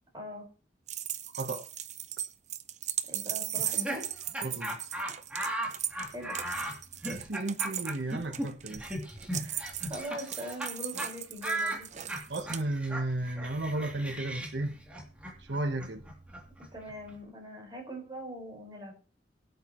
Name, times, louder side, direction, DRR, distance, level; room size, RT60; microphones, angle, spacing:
voice 1, 0.1-0.5 3.1-4.1 6.1-6.4 9.3-11.9 16.7-18.9, equal, 25° right, 5.1 m, -42 dB
sound 1, 0.9-12.6, right 11 dB, 40° right, 0.7 m, -37 dB
Laughter, 3.5-10.7 11.0-11.1 11.4-17.1, right 1 dB, 5° right, 2.9 m, -37 dB
voice 2, 4.4-4.8 7.1-8.9 12.3-14.8 15.4-16.0, right 2 dB, 80° right, 1.2 m, -34 dB
22.0 x 8.2 x 3.1 m
head